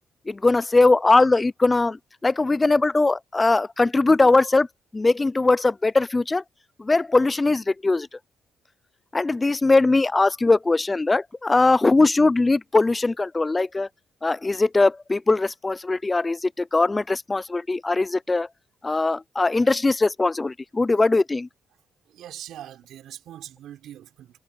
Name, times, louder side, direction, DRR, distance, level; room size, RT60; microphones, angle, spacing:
voice 1, 0.3-4.7 4.9-6.4 6.8-8.1 9.1-13.9 14.2-18.5 18.8-21.5, left 3 dB, 20° left, 0.3 m, -20 dB
voice 2, 22.1-24.4, right 11 dB, 75° right, 5.2 m, -42 dB
cardioid pair, 90°, 0 cm